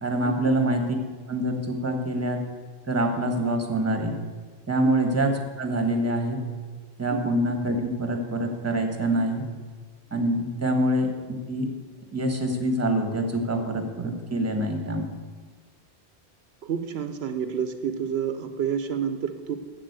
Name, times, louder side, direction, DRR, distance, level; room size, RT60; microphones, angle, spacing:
voice 1, 0.0-1.0 1.3-2.5 2.9-4.1 4.7-6.4 7.0-9.4 10.1-11.1 11.5-11.7 12.1-15.1, right 1 dB, 15° right, 5 dB, 1.3 m, -25 dB
voice 2, 16.6-19.6, right 7 dB, 75° right, 8 dB, 1.0 m, -29 dB
7.5 x 7.5 x 8.0 m, 1.5 s
omnidirectional pair, 1.1 m